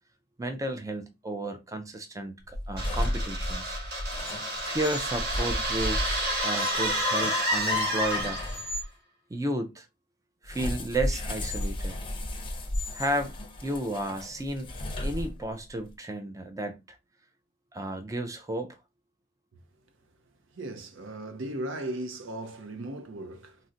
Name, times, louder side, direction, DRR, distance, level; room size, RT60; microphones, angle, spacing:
voice 1, 0.4-3.8 4.7-8.4 9.3-9.9 10.4-12.0 12.9-13.3 13.6-14.7 15.0-16.8 17.7-18.8, right 1 dB, 15° right, 0.4 m, -33 dB
sound 1, 2.4-8.9 10.4-15.7, left 1 dB, 25° left, 0.6 m, -34 dB
sound 2, 2.8-8.7, equal, 60° right, 1.2 m, -30 dB
voice 2, 20.5-23.6, right 1 dB, 75° right, 0.6 m, -37 dB
3.8 x 2.1 x 2.5 m
head